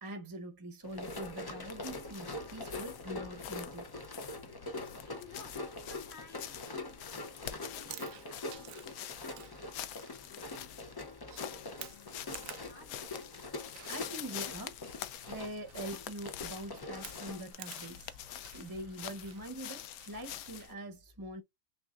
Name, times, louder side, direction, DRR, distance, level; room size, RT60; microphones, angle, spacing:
voice 1, 0.0-3.9 13.9-14.8 15.3-18.2 18.5-21.4, right 1 dB, 20° right, 0.7 m, -44 dB
sound 1, 0.8-20.7, left 11 dB, 85° left, 1.1 m, -47 dB
Run, 0.8-17.5, left 2 dB, 30° left, 0.4 m, -44 dB
voice 2, 5.0-9.7 10.2-11.0 11.4-13.2, left 3 dB, 50° left, 1.7 m, -57 dB
Chewing mastication, 7.6-20.7, right 11 dB, 70° right, 1.0 m, -54 dB
6.1 x 2.5 x 2.4 m
omnidirectional pair, 1.5 m